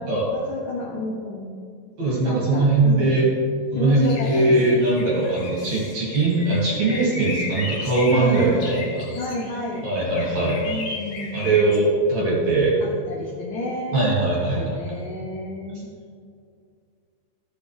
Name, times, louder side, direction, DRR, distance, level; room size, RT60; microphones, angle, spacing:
voice 1, 0.3-1.5 2.2-3.2 3.8-4.7 8.1-8.7 9.1-9.8 10.6-11.5 12.8-15.9, left 1 dB, 90° left, -3 dB, 1.8 m, -31 dB
voice 2, 2.0-3.3 3.7-9.1 9.8-10.6 11.3-12.8 13.9-14.7, right 2 dB, 45° right, -5 dB, 2.8 m, -20 dB
sound 1, 4.0-11.8, left 3 dB, 60° left, 2.7 m, -35 dB
14.0 x 7.6 x 3.3 m, 2.3 s
omnidirectional pair, 5.2 m